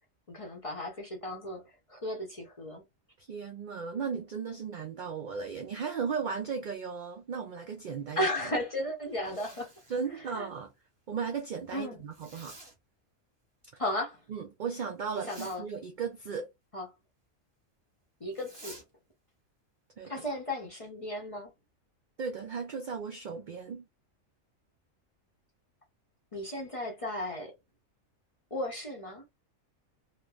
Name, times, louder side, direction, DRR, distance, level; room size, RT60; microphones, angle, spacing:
voice 1, 0.3-2.8 8.2-9.7 10.1-10.5 11.7-12.0 13.8-14.2 15.2-15.7 16.7-16.9 18.2-18.8 20.0-21.5 26.3-27.5 28.5-29.2, left 1 dB, 35° left, 0.6 m, -35 dB
voice 2, 3.2-8.3 9.9-10.7 11.1-12.6 14.3-16.5 20.0-20.2 22.2-23.8, right 6 dB, 75° right, 0.4 m, -36 dB
Zipper (clothing), 9.0-10.1 12.1-12.7 15.1-15.6 18.3-18.8, right 2 dB, 25° right, 0.8 m, -51 dB
3.0 x 2.0 x 2.3 m
omnidirectional pair, 1.4 m